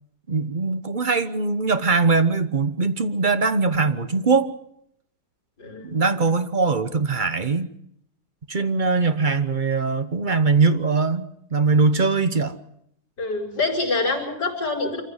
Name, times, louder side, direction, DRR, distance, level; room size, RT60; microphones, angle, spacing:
voice 1, 0.3-4.5 5.8-7.7 8.5-12.5, right 4 dB, 35° right, 10 dB, 0.9 m, -21 dB
voice 2, 5.6-6.0 13.2-15.0, left 3 dB, 55° left, -4 dB, 5.2 m, -26 dB
26.0 x 15.0 x 8.0 m, 0.75 s
omnidirectional pair, 2.1 m